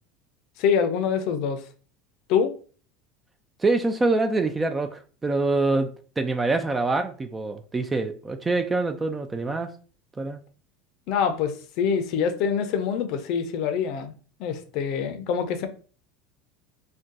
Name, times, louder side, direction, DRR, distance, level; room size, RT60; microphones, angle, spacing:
voice 1, 0.6-1.6 2.3-2.5 11.1-14.1 14.4-15.7, left 7 dB, 60° left, 0.5 m, -25 dB
voice 2, 3.6-9.7 10.2-10.4, right 3 dB, 15° right, 0.3 m, -25 dB
2.6 x 2.2 x 3.7 m
supercardioid pair, 130°, 0 cm